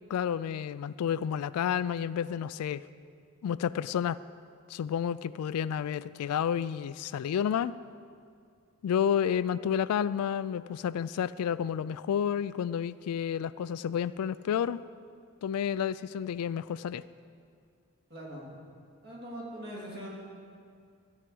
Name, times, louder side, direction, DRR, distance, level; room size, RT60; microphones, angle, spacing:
voice 1, 0.1-2.8 3.4-4.2 4.7-7.8 8.8-14.8 15.4-17.0, left 8 dB, 85° left, 17 dB, 0.3 m, -30 dB
voice 2, 18.1-18.6 19.0-20.1, equal, 45° right, -5 dB, 2.9 m, -41 dB
14.0 x 4.8 x 7.7 m, 2.3 s
head